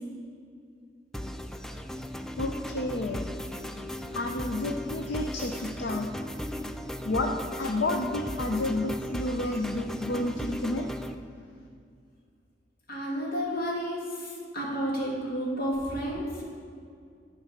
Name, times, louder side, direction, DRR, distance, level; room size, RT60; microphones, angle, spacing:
sound 1, 1.1-11.2, equal, 5° left, 0.3 m, -37 dB
voice 1, 2.4-3.3 4.1-6.1 7.0-7.3 7.6-10.9, left 2 dB, 75° left, 3 dB, 0.6 m, -30 dB
voice 2, 12.9-16.3, equal, 55° left, -4 dB, 2.2 m, -31 dB
11.0 x 4.7 x 5.8 m, 2.3 s
head